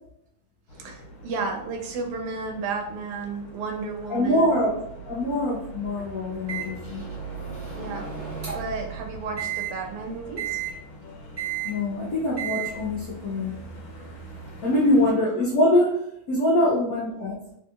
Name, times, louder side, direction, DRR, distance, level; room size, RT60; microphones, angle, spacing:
sound 1, 0.7-15.1, right 3 dB, 70° left, 1.6 m, -42 dB
voice 1, 0.8-4.6 7.8-8.1 8.5-10.6 16.6-16.7, right 4 dB, 90° right, 3 dB, 1.5 m, -33 dB
voice 2, 4.1-4.8 5.1-7.0 11.6-13.6 14.6-17.4, left 1 dB, 90° left, -5 dB, 0.8 m, -23 dB
Microwave oven, 6.5-8.8 9.4-9.7 10.4-10.7 11.4-11.7 12.4-12.7, right 9 dB, 40° right, 0.8 m, -33 dB
3.4 x 2.7 x 2.3 m, 0.76 s
omnidirectional pair, 2.3 m